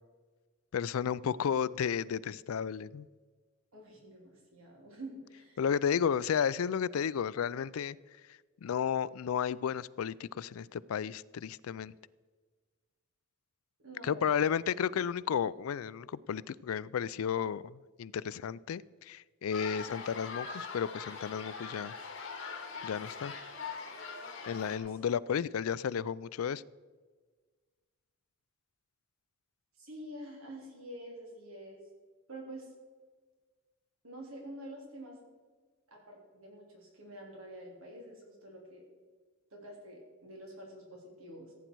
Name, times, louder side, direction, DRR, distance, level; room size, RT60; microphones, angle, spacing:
voice 1, 0.7-3.1 5.6-8.0 8.6-11.9 14.0-21.9 22.8-23.3 24.5-26.6, left 7 dB, 85° left, 20 dB, 0.4 m, -33 dB
voice 2, 3.7-5.6 13.8-14.4 24.9-25.0 29.8-31.8 32.3-32.7 34.0-35.2 35.9-38.8 39.5-41.5, right 1 dB, 80° right, -1 dB, 3.3 m, -47 dB
sound 1, 19.5-24.8, left 5 dB, 60° left, 2.1 m, -42 dB
15.5 x 9.3 x 4.6 m, 1.4 s
head